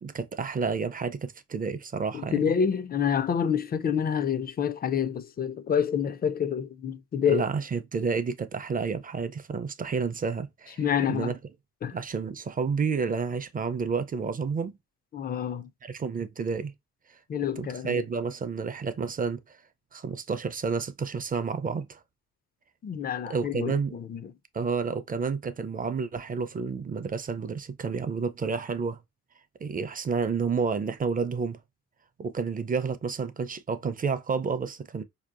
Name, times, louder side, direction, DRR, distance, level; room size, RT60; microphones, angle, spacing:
voice 1, 0.0-2.5 7.3-10.8 11.1-11.3 11.9-14.8 15.8-16.7 17.6-19.6 19.9-22.0 23.3-24.0 24.5-29.0 29.6-31.6 32.2-35.0, right 5 dB, 30° right, 0.5 m, -30 dB
voice 2, 2.1-7.4 10.8-11.3 11.8-12.0 15.1-15.7 17.3-18.0 22.8-24.3, left 8 dB, 30° left, 0.4 m, -28 dB
4.4 x 2.8 x 2.4 m
cardioid pair, 90°, 30 cm